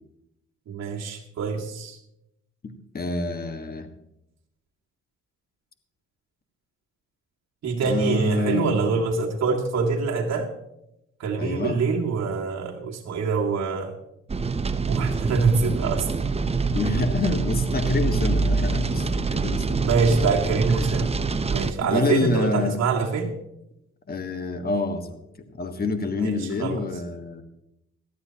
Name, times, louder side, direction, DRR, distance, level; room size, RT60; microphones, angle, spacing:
voice 1, 0.7-2.0 7.6-10.5 11.2-13.9 14.9-16.1 19.8-21.1 21.5-23.3 26.2-26.8, right 4 dB, 60° right, -2 dB, 2.1 m, -25 dB
voice 2, 2.6-3.9 7.8-8.8 11.4-11.8 16.7-19.9 20.7-21.1 21.8-22.8 24.1-25.2 25.5-27.4, left 3 dB, 30° left, 7 dB, 1.4 m, -27 dB
sound 1, 14.3-21.7, right 4 dB, 20° right, 0.7 m, -25 dB
18.0 x 12.5 x 2.9 m, 0.83 s
cardioid pair, 90°, 30 cm